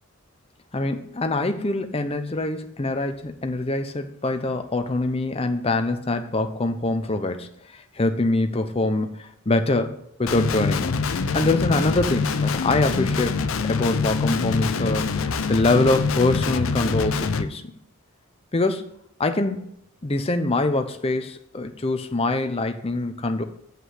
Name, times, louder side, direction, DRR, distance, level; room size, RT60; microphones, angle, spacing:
voice 1, 0.7-10.9 11.3-17.6 18.5-18.9 19.2-19.7 20.0-23.4, left 2 dB, 25° left, 7 dB, 0.6 m, -24 dB
Guitar, 10.3-17.4, left 4 dB, 65° left, 0.5 m, -25 dB
7.7 x 5.6 x 6.4 m, 0.72 s
head